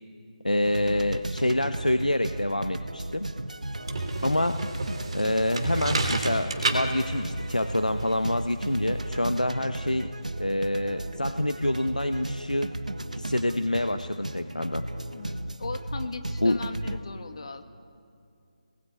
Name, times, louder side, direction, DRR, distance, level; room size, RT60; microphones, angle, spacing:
voice 1, 0.4-3.3 4.2-4.6 5.1-10.1 10.4-12.7 13.1-14.8 16.4-16.6, left 1 dB, 85° left, 9 dB, 1.0 m, -27 dB
sound 1, 0.6-17.0, right 1 dB, 75° right, 1.5 m, -35 dB
sound 2, 3.6-9.1, right 3 dB, 45° right, 3.4 m, -32 dB
voice 2, 15.1-17.6, left 4 dB, 45° left, 6 dB, 1.9 m, -38 dB
29.5 x 21.0 x 9.4 m, 2.4 s
figure-of-eight pair, 150°, 4 cm